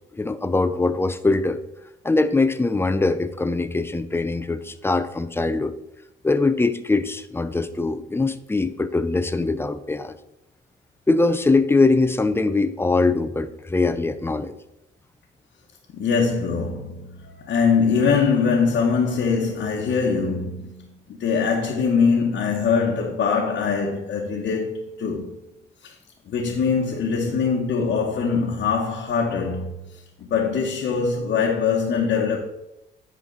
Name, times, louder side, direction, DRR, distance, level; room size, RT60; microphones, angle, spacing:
voice 1, 0.1-1.6 2.0-5.7 6.2-10.2 11.1-14.6, left 3 dB, 10° left, 0.5 m, -22 dB
voice 2, 15.9-25.3 25.8-25.9 26.3-29.7 30.2-32.4, left 5 dB, 65° left, 1.1 m, -22 dB
10.0 x 4.4 x 3.9 m
cardioid pair, 90°, 20 cm